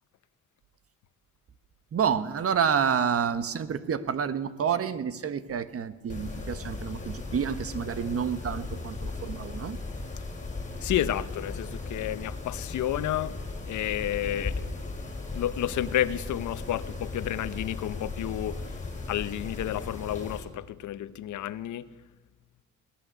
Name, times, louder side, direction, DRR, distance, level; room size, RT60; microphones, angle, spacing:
voice 1, 1.9-9.8, right 7 dB, 50° right, 1.4 m, -29 dB
Mechanisms, 6.1-20.4, left 3 dB, 25° left, 5.7 m, -37 dB
voice 2, 10.8-13.4 13.6-18.7 19.1-21.9, left 12 dB, 75° left, 1.0 m, -31 dB
21.0 x 18.0 x 8.0 m
cardioid pair, 90°, 30 cm